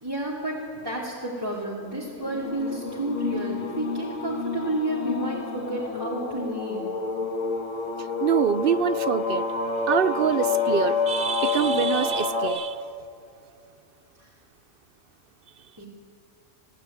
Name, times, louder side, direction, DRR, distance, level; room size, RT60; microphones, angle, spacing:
voice 1, 0.0-6.9 14.2-14.3 15.8-15.9, right 1 dB, 15° right, -5 dB, 3.1 m, -30 dB
sound 1, 2.2-12.5, left 4 dB, 90° left, 2.0 m, -29 dB
voice 2, 8.0-9.4 9.9-12.8, right 8 dB, 55° right, 15 dB, 0.7 m, -25 dB
22.0 x 16.5 x 9.3 m, 2.5 s
omnidirectional pair, 1.3 m